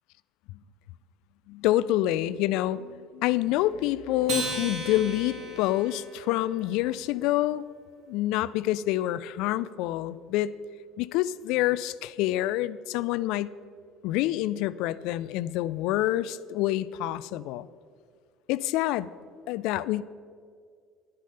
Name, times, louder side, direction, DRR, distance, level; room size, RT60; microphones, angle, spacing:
voice 1, 1.5-7.6 8.1-10.5 11.0-13.5 14.0-17.7 18.5-19.1 19.5-20.0, left 14 dB, 60° left, 17 dB, 0.3 m, -27 dB
Acoustic guitar, 4.2-6.9, right 3 dB, 50° right, 1.8 m, -36 dB
11.0 x 10.5 x 5.4 m, 2.2 s
figure-of-eight pair, 60°, 0 cm